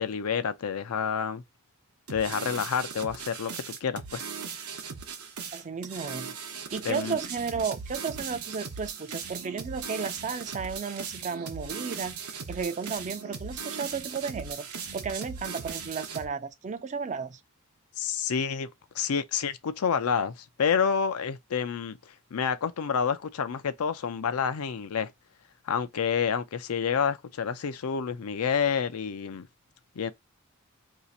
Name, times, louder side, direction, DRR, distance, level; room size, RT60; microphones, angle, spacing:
voice 1, 0.0-1.4 2.1-4.2 6.8-7.2 18.0-18.7 18.9-22.0 22.3-25.1 25.7-29.5 30.0-30.1, left 6 dB, 80° left, 0.5 m, -28 dB
sound 1, 2.1-16.3, right 6 dB, 80° right, 0.9 m, -38 dB
voice 2, 5.5-14.7 14.9-17.4, right 5 dB, 35° right, 0.4 m, -34 dB
2.8 x 2.4 x 4.0 m
head